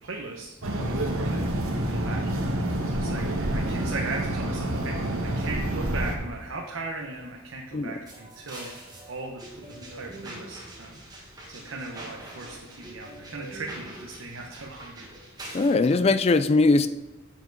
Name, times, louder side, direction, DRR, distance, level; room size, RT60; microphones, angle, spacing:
voice 1, 0.0-0.5 0.9-1.5 1.9-2.2 2.9-8.7 9.1-11.0 11.5-15.1 15.9-16.0, right 3 dB, 65° right, 0 dB, 0.9 m, -38 dB
sound 1, 0.6-6.2, right 1 dB, 85° right, 1.2 m, -28 dB
sound 2, 8.1-15.8, right 1 dB, 20° right, 1.5 m, -43 dB
voice 2, 15.5-16.9, left 3 dB, 30° left, 12 dB, 0.3 m, -20 dB
7.1 x 7.1 x 3.9 m, 1.1 s
head